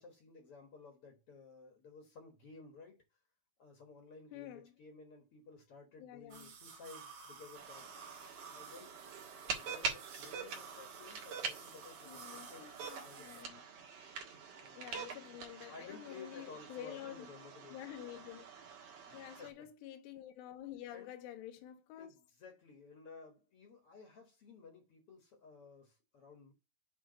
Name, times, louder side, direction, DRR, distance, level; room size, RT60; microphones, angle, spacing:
voice 1, 0.0-3.0 3.6-7.9 8.5-8.9 9.4-12.7 13.0-13.5 14.6-15.2 15.7-17.9 19.1-19.7 20.9-21.1 22.0-26.5, left 4 dB, 55° left, 1.6 m, -55 dB
voice 2, 4.3-4.7 6.0-6.5 12.1-13.6 14.7-17.3 17.7-18.5 19.1-22.2, left 12 dB, 90° left, 3.0 m, -49 dB
sound 1, 6.3-13.4, right 5 dB, 85° right, 1.3 m, -53 dB
sound 2, 7.5-19.5, right 5 dB, 60° right, 2.7 m, -45 dB
8.4 x 3.5 x 5.2 m
omnidirectional pair, 4.7 m